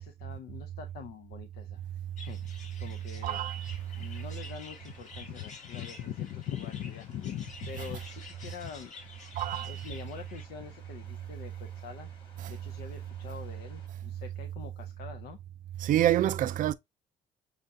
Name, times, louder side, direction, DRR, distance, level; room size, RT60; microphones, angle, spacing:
voice 1, 0.0-3.4 3.9-12.1 12.5-15.4, left 9 dB, 70° left, 0.6 m, -43 dB
sound 1, 2.2-10.4, left 4 dB, 45° left, 1.7 m, -50 dB
sound 2, 2.3-13.9, left 3 dB, 30° left, 1.9 m, -60 dB
voice 2, 3.2-3.7 9.4-9.8 15.8-16.7, right 12 dB, 50° right, 0.4 m, -27 dB
6.4 x 2.4 x 2.6 m
cardioid pair, 110°, 17 cm